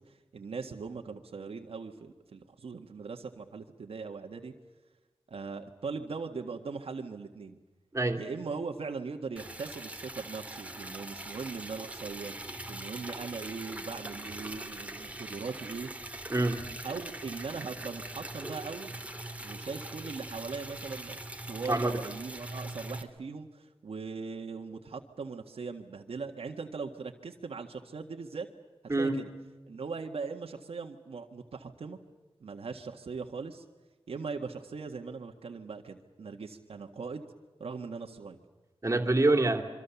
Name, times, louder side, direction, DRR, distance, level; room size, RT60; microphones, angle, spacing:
voice 1, 0.0-4.5 5.3-7.6 8.1-12.4 12.7-15.9 16.8-18.9 19.4-21.2 21.5-28.5 28.8-29.3 29.7-32.0 32.4-33.6 34.1-37.3 37.6-38.4, right 4 dB, 80° right, 3 dB, 1.7 m, -40 dB
voice 2, 7.9-8.2 16.3-16.6 21.7-21.9 28.9-29.2 38.8-39.6, right 2 dB, 30° right, 5 dB, 3.0 m, -26 dB
Liquid, 9.4-23.0, right 1 dB, 15° right, 2.1 m, -42 dB
26.5 x 24.5 x 7.1 m, 1.2 s
wide cardioid pair, 120°, 10 cm